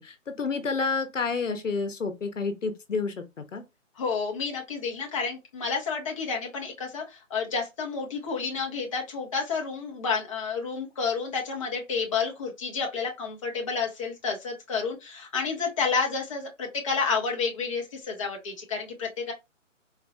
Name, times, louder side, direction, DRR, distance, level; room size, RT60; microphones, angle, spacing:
voice 1, 0.0-3.6, left 4 dB, 70° left, 0.9 m, -30 dB
voice 2, 4.0-19.3, left 5 dB, 25° left, 0.6 m, -30 dB
4.0 x 2.2 x 2.7 m
figure-of-eight pair, 140°, 39 cm